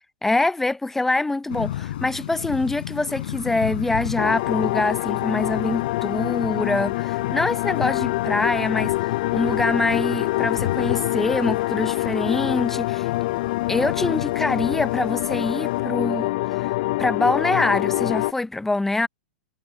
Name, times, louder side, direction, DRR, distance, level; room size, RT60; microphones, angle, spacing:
voice 1, 0.2-8.9 9.3-13.1 13.7-16.7 17.0-19.1, left 2 dB, 5° left, 0.6 m, -24 dB
sound 1, 1.5-15.8, left 12 dB, 70° left, 3.6 m, -35 dB
sound 2, 4.2-18.3, left 19 dB, 55° left, 0.3 m, -25 dB
sound 3, 9.4-13.0, right 10 dB, 75° right, 6.3 m, -57 dB
hypercardioid pair, 130°, 5 cm